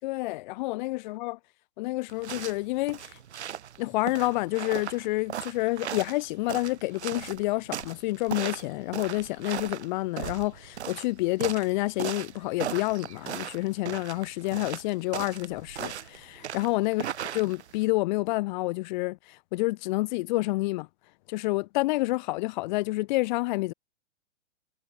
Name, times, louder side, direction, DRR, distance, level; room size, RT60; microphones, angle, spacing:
voice 1, 0.0-1.4 1.8-3.2 3.8-17.1 17.3-20.9 21.3-23.7, left 21 dB, 40° left, 4.7 m, -29 dB
sound 1, 2.1-17.8, right 9 dB, 65° right, 3.9 m, -38 dB
hypercardioid pair, 140°, 35 cm